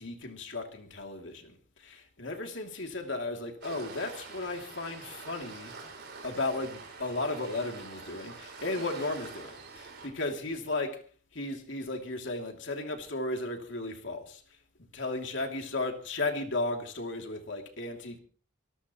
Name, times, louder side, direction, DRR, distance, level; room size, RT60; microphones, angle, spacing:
voice 1, 0.0-5.7 6.2-11.0 11.3-14.4 14.9-18.2, left 2 dB, 60° left, 2.8 m, -35 dB
Waves surf, 3.6-10.1, right 4 dB, 50° right, 5.4 m, -46 dB
25.5 x 13.0 x 3.1 m
head